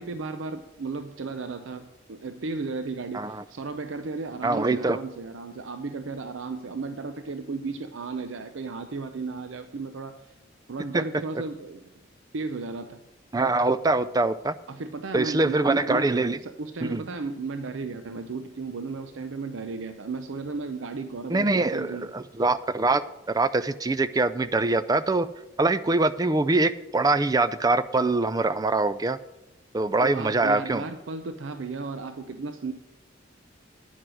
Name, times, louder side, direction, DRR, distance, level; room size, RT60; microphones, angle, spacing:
voice 1, 0.0-10.2 10.7-11.8 12.3-13.0 14.7-16.1 16.4-22.1 30.0-32.7, right 3 dB, 85° right, 9 dB, 0.6 m, -34 dB
voice 2, 3.1-3.4 4.4-5.0 10.9-11.0 13.3-14.5 15.1-16.4 16.8-17.0 21.3-25.3 25.6-29.2 29.7-30.8, right 2 dB, 20° right, 14 dB, 0.4 m, -24 dB
9.9 x 7.8 x 6.3 m, 0.97 s
head